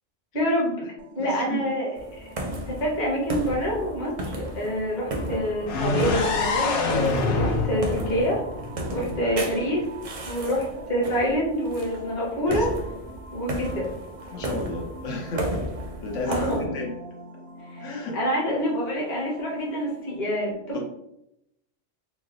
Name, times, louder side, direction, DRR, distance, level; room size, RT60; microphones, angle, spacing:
voice 1, 0.3-1.9 2.7-8.4 8.9-9.8 10.3-12.7 13.3-13.9 16.3-16.6 17.7-17.9 18.1-20.8, equal, 40° left, -4 dB, 1.1 m, -26 dB
sound 1, 1.0-20.2, right 1 dB, 85° right, 0.9 m, -44 dB
voice 2, 1.2-1.7 8.9-9.4 12.5-12.6 14.3-15.6 16.0-16.9 17.8-18.2 20.7-20.8, left 2 dB, 90° left, 0 dB, 1.1 m, -33 dB
sound 2, 2.0-16.7, right 1 dB, 45° right, 0.4 m, -34 dB
sound 3, 5.7-9.5, left 3 dB, 60° left, 0.7 m, -26 dB
3.2 x 2.0 x 3.6 m, 0.82 s
omnidirectional pair, 1.2 m